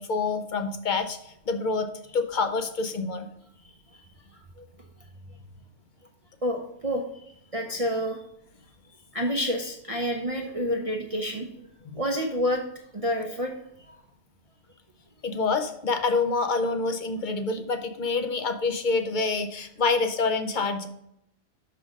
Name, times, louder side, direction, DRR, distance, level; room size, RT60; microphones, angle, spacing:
voice 1, 0.0-3.3 11.8-12.0 15.2-20.9, left 4 dB, 45° left, 7 dB, 0.7 m, -27 dB
voice 2, 3.6-4.0 4.6-4.7 6.4-7.0 7.5-8.2 9.1-11.5 11.9-12.6 12.9-13.5 13.8-13.9, equal, 35° right, 1 dB, 0.7 m, -28 dB
6.1 x 5.8 x 5.2 m, 0.76 s
omnidirectional pair, 1.3 m